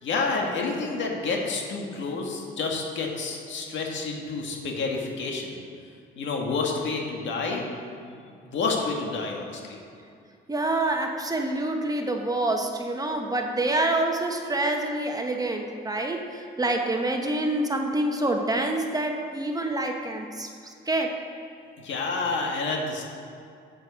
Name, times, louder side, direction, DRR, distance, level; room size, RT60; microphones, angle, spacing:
voice 1, 0.0-5.6 6.2-8.2 8.5-9.8 21.8-23.0, left 3 dB, 70° left, 0 dB, 1.8 m, -29 dB
voice 2, 10.5-21.1, right 2 dB, 20° right, 3 dB, 1.1 m, -27 dB
8.0 x 7.9 x 6.1 m, 2.4 s
cardioid pair, 90°, 20 cm